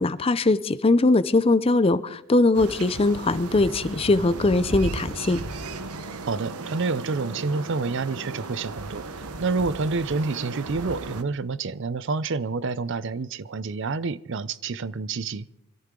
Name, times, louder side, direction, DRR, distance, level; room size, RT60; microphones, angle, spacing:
voice 1, 0.0-5.4, left 2 dB, 25° left, 0.5 m, -21 dB
sound 1, 2.5-11.2, right 3 dB, 90° right, 1.1 m, -35 dB
voice 2, 6.3-9.1 9.4-15.5, right 4 dB, 55° right, 0.5 m, -28 dB
23.5 x 14.0 x 3.8 m
head